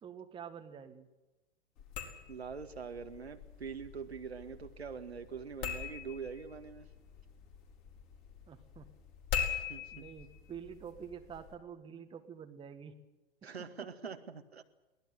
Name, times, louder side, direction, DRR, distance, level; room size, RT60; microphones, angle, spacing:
voice 1, 0.0-1.1 8.5-8.9 9.9-13.0 13.4-13.5, right 7 dB, 15° right, 6 dB, 1.8 m, -48 dB
sound 1, 1.8-11.5, left 7 dB, 40° left, 4.7 m, -43 dB
voice 2, 2.3-6.9 9.7-10.0 13.4-14.6, right 6 dB, 75° right, 6 dB, 2.0 m, -44 dB
23.0 x 18.0 x 8.0 m, 1.1 s
figure-of-eight pair, 105°, 32 cm